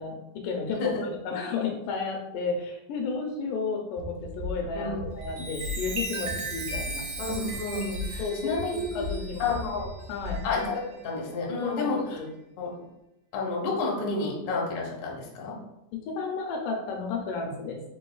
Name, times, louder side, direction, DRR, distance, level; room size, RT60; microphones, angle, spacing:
voice 1, 0.0-7.1 8.2-9.6 10.1-10.4 11.6-12.3 15.9-17.8, left 4 dB, 85° left, 2 dB, 2.2 m, -33 dB
voice 2, 0.7-1.1 4.7-5.0 7.2-8.8 9.4-9.9 10.4-12.2 12.6-12.7 13.3-15.6, left 3 dB, 65° left, -2 dB, 1.4 m, -30 dB
sound 1, 4.0-10.7, left 2 dB, 80° right, 2.0 m, -38 dB
Chime, 5.1-11.1 11.7-11.9, right 2 dB, 65° right, 2.0 m, -38 dB
4.7 x 3.7 x 2.3 m, 0.89 s
omnidirectional pair, 3.7 m